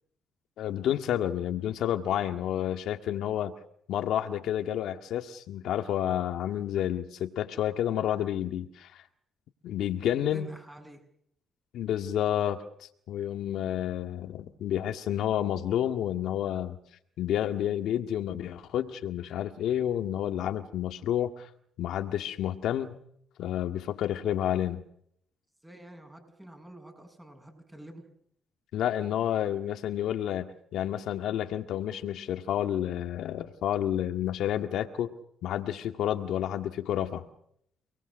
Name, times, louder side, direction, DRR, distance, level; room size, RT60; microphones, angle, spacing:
voice 1, 0.6-3.5 3.9-9.0 9.6-10.5 11.7-16.8 17.2-21.5 21.8-23.0 23.4-24.8 28.7-35.1 35.4-37.3, left 11 dB, 80° left, 7 dB, 1.9 m, -30 dB
voice 2, 10.2-11.0 25.6-28.0, right 1 dB, 10° right, 5 dB, 7.6 m, -48 dB
29.0 x 20.0 x 6.4 m, 0.69 s
cardioid pair, 90°, 0 cm